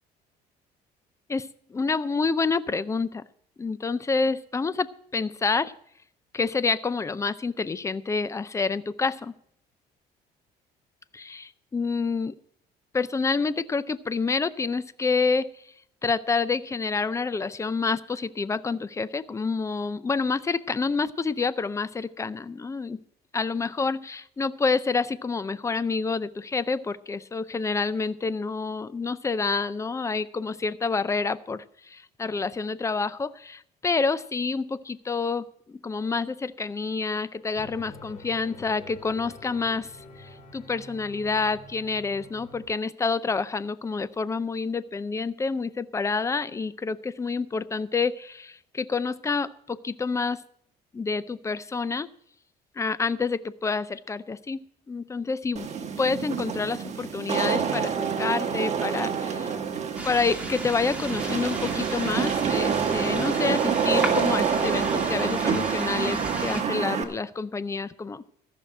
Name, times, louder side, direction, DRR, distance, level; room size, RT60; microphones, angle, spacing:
voice 1, 1.3-3.2 3.6-5.7 6.3-9.3 11.1-12.3 12.9-15.7 16.0-23.0 23.3-50.4 50.9-52.1 52.8-55.7 56.0-59.5 60.0-68.2, left 4 dB, 15° left, 16 dB, 0.5 m, -28 dB
sound 1, 37.6-42.7, left 2 dB, 45° left, 2.8 m, -47 dB
Wind / Rain, 55.6-67.0, right 6 dB, 40° right, 1.4 m, -27 dB
sound 2, 59.9-66.6, right 1 dB, 10° right, 2.3 m, -36 dB
14.0 x 6.2 x 7.6 m, 0.67 s
cardioid pair, 110°, 17 cm